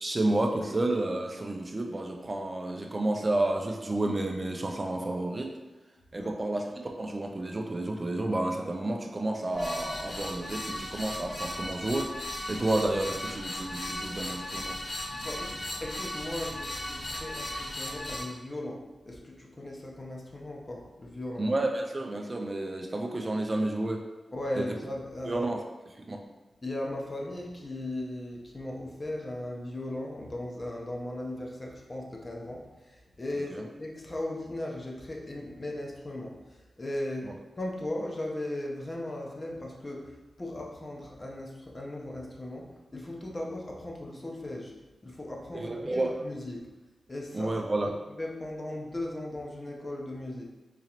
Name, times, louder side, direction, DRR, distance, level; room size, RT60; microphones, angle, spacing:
voice 1, 0.0-5.5 6.1-6.6 7.0-12.1 12.5-14.8 21.4-24.0 24.5-24.7 25.2-25.6 26.1-26.2 33.5-33.6 45.5-46.1 47.3-47.9, right 2 dB, 35° right, 2 dB, 0.4 m, -30 dB
sound 1, 9.5-18.2, left 1 dB, 65° left, 0.9 m, -37 dB
voice 2, 15.1-21.5 24.3-25.4 26.6-44.7 45.0-46.7 47.1-47.5 48.2-50.4, left 1 dB, 35° left, -1 dB, 0.7 m, -37 dB
3.8 x 3.0 x 2.9 m, 1.1 s
cardioid pair, 60°, 0 cm